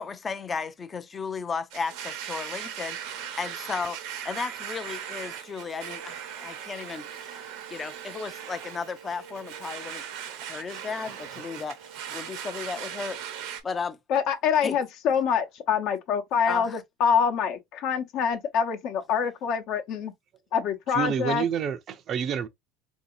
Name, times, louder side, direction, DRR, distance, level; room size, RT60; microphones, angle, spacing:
voice 1, 0.0-4.0 4.2-7.4 7.7-10.0 10.4-11.8 12.1-13.2 13.6-14.0 14.6-14.8 16.5-16.8, left 5 dB, 25° left, 0.5 m, -34 dB
Domestic sounds home sounds, 1.7-13.6, right 9 dB, 70° right, 0.8 m, -38 dB
voice 2, 14.1-20.1 20.5-21.4, left 7 dB, 60° left, 0.9 m, -25 dB
voice 3, 20.9-22.5, right 8 dB, 40° right, 0.5 m, -28 dB
3.8 x 2.7 x 2.6 m
supercardioid pair, 120°, 0 cm